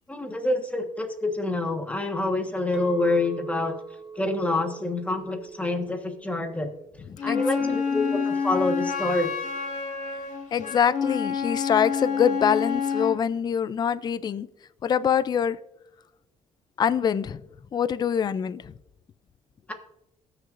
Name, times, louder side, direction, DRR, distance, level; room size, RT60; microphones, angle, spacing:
voice 1, 0.1-3.7 4.1-6.7 7.2-9.3 19.7-19.8, left 2 dB, 10° left, 1.3 m, -27 dB
Chink clink, 2.7-8.0, right 5 dB, 5° right, 0.8 m, -43 dB
voice 2, 7.0-8.2 10.5-14.5 14.8-15.6 16.8-17.4 17.7-18.7, left 8 dB, 35° left, 0.3 m, -25 dB
Wind instrument woodwind instrument, 7.2-13.2, left 6 dB, 70° left, 2.1 m, -28 dB
19.5 x 6.5 x 2.5 m
cardioid pair, 115°, 13 cm